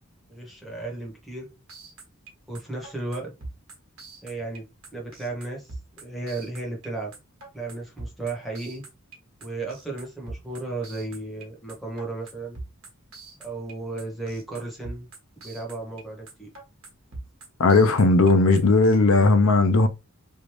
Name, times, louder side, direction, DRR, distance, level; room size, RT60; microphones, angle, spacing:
voice 1, 0.3-1.5 2.5-3.3 4.2-4.6 4.9-7.1 7.5-8.8 9.4-12.6 13.4-15.1 15.4-16.5, right 2 dB, ahead, 1.3 m, -34 dB
sound 1, 1.7-19.0, right 2 dB, 70° right, 1.4 m, -42 dB
voice 2, 17.6-19.9, left 3 dB, 70° left, 0.6 m, -17 dB
3.3 x 2.5 x 3.1 m
head